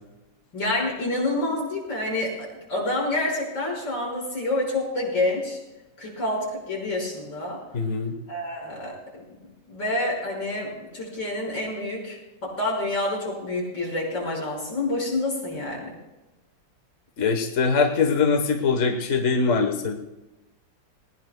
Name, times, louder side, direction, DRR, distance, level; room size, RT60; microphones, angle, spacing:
voice 1, 0.5-5.6 6.0-7.6 8.3-9.0 9.7-15.9, left 2 dB, 80° left, -3 dB, 6.1 m, -28 dB
voice 2, 7.7-8.2 17.2-20.0, left 5 dB, 45° left, 4 dB, 1.4 m, -22 dB
20.0 x 20.0 x 2.2 m, 1.0 s
omnidirectional pair, 2.0 m